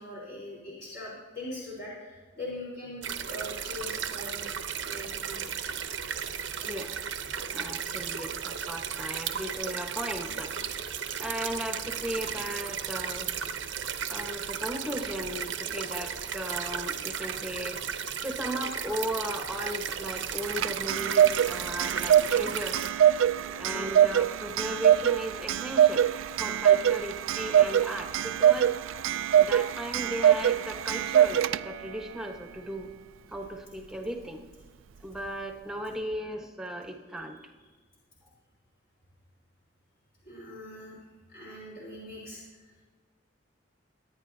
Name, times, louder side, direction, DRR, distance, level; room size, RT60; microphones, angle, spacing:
voice 1, 0.0-4.5 4.8-5.5 6.5-6.7 23.4-23.7 40.2-41.0 41.3-42.4, left 1 dB, 50° left, -7 dB, 3.9 m, -41 dB
sound 1, 3.0-22.9, right 7 dB, 70° right, 0.8 m, -35 dB
voice 2, 6.6-13.4 14.1-22.8 23.6-26.1 26.4-28.7 29.3-32.9 33.3-34.4 35.0-37.4, equal, 5° right, 2 dB, 1.2 m, -37 dB
Clock, 20.3-31.9, right 10 dB, 90° right, 0.4 m, -24 dB
25.0 x 9.6 x 2.7 m, 1.4 s
head